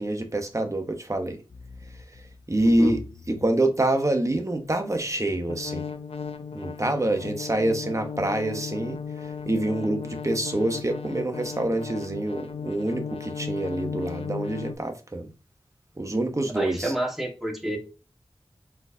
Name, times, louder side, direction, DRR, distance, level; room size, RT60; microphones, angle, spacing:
voice 1, 0.0-1.4 2.5-3.0 3.3-5.9 6.5-9.0 9.5-15.3 16.0-16.9, right 1 dB, 30° right, 1.0 m, -26 dB
sound 1, 1.5-14.8, left 5 dB, 75° left, 0.5 m, -37 dB
voice 2, 2.6-2.9 16.5-17.8, right 1 dB, ahead, 1.9 m, -29 dB
4.5 x 3.9 x 2.7 m
cardioid pair, 40°, 10 cm